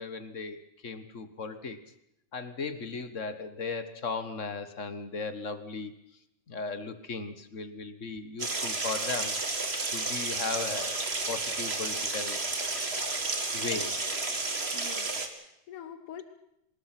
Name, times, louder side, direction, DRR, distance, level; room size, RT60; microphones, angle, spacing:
voice 1, 0.0-1.8 2.3-5.9 6.5-9.4 9.9-13.2 13.5-13.9, left 4 dB, 40° left, 10 dB, 1.6 m, -37 dB
sound 1, 8.4-15.3, right 3 dB, 30° right, 2.2 m, -32 dB
voice 2, 14.7-16.2, left 8 dB, 85° left, 8 dB, 2.3 m, -45 dB
24.5 x 20.5 x 6.0 m, 0.80 s
omnidirectional pair, 2.4 m